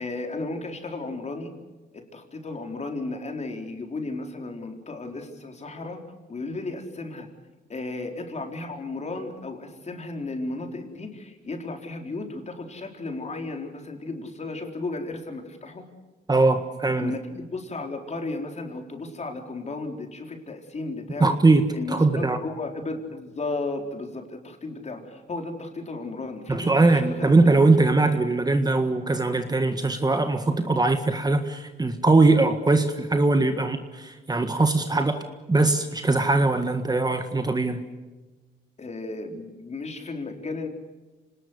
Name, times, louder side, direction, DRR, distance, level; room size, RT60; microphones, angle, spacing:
voice 1, 0.0-1.5 1.9-6.0 6.3-7.3 7.7-15.9 17.0-21.4 21.7-27.4 38.8-40.7, left 2 dB, 35° left, 4 dB, 4.3 m, -34 dB
voice 2, 16.3-17.1 21.2-22.4 26.5-35.2 35.5-37.8, right 3 dB, 20° right, 8 dB, 1.6 m, -21 dB
26.5 x 19.5 x 8.1 m, 1.2 s
cardioid pair, 90°, 20 cm